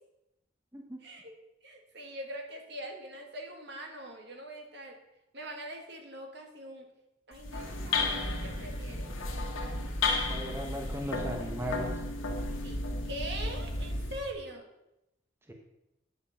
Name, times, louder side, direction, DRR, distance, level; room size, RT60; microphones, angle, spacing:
voice 1, 1.0-1.3 1.6-5.0 5.3-6.9 7.3-9.2 12.6-14.7, right 1 dB, 55° right, 3 dB, 1.7 m, -43 dB
sound 1, 7.3-14.3, left 2 dB, 85° left, 1.6 m, -33 dB
voice 2, 10.3-11.9 15.5-15.6, equal, 10° right, 1 dB, 1.0 m, -37 dB
9.3 x 7.0 x 5.7 m, 0.90 s
head